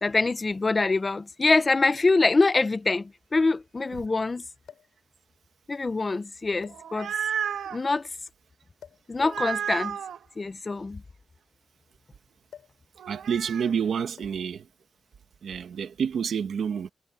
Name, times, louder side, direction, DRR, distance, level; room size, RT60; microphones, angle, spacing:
voice 1, 0.0-4.4 5.7-7.1 7.7-8.1 9.1-10.0 10.4-11.0, left 3 dB, 20° left, 0.4 m, -24 dB
sound 1, 0.9-1.0 2.1-2.2 2.4-2.5 4.6-5.0 5.9-6.0 6.6-7.3 8.8-9.1 10.2-11.9 12.5-12.9 13.1-13.4 14.2-14.5 15.5-15.8, left 8 dB, 75° left, 7.5 m, -52 dB
sound 2, 6.6-7.8 9.2-10.2 13.0-13.7, right 8 dB, 90° right, 1.5 m, -32 dB
voice 2, 13.1-14.7 15.4-16.9, right 7 dB, 60° right, 1.6 m, -28 dB
wide cardioid pair, 175°, 0 cm